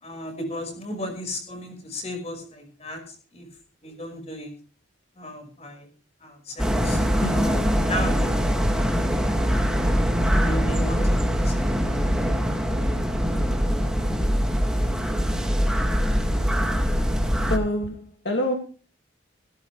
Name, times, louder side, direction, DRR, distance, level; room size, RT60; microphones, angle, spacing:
voice 1, 0.0-3.5 3.8-4.5 5.2-5.9 6.2-7.6 7.9-8.7 9.4-9.9 10.4-11.5, left 1 dB, 35° left, 5 dB, 5.4 m, -35 dB
sound 1, 6.6-17.6, equal, 5° right, 2.2 m, -23 dB
voice 2, 17.5-18.5, left 1 dB, 60° left, 2 dB, 2.4 m, -26 dB
17.0 x 17.0 x 3.3 m, 0.38 s
head